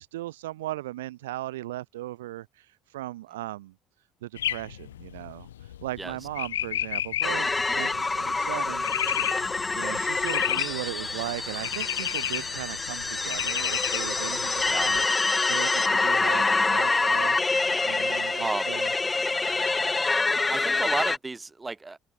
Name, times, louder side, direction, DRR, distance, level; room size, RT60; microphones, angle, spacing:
voice 1, 0.0-3.7 4.2-5.5 5.8-8.9 9.2-15.0 15.5-18.9, right 16 dB, 70° right, 1.1 m, -37 dB
sound 1, 4.4-15.0, left 11 dB, 75° left, 1.7 m, -33 dB
sound 2, 7.2-21.2, left 3 dB, 20° left, 0.4 m, -26 dB
voice 2, 18.4-18.7 20.3-22.0, right 3 dB, 20° right, 2.5 m, -32 dB
figure-of-eight pair, 55°, 0 cm